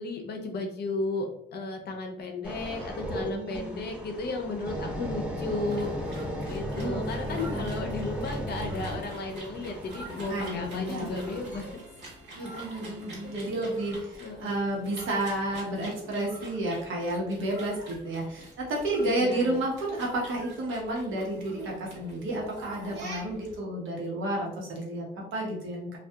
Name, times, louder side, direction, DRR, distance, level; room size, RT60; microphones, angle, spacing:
voice 1, 0.0-5.9 6.4-11.8 13.2-13.3 14.2-14.5 19.0-19.6, left 2 dB, 55° left, 3 dB, 0.6 m, -34 dB
sound 1, 2.4-13.4 13.9-14.1, equal, 5° right, 0.8 m, -36 dB
voice 2, 3.1-3.7 6.7-7.7 10.3-11.1 12.4-26.0, right 1 dB, 80° right, -2 dB, 0.9 m, -31 dB
sound 2, 5.4-23.6, right 2 dB, 60° right, 1.2 m, -46 dB
2.7 x 2.3 x 2.2 m, 0.77 s
cardioid pair, 90°, 20 cm